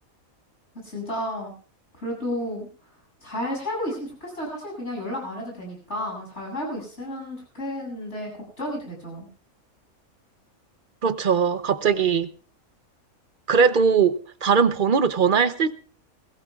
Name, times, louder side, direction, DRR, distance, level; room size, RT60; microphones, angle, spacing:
voice 1, 0.8-1.5 2.0-2.7 3.2-8.3 8.6-9.3, left 1 dB, 50° left, 7.9 m, -32 dB
voice 2, 11.0-12.3 13.5-14.1 14.4-15.7, right 6 dB, 45° right, 0.7 m, -20 dB
22.0 x 16.5 x 2.4 m
omnidirectional pair, 1.5 m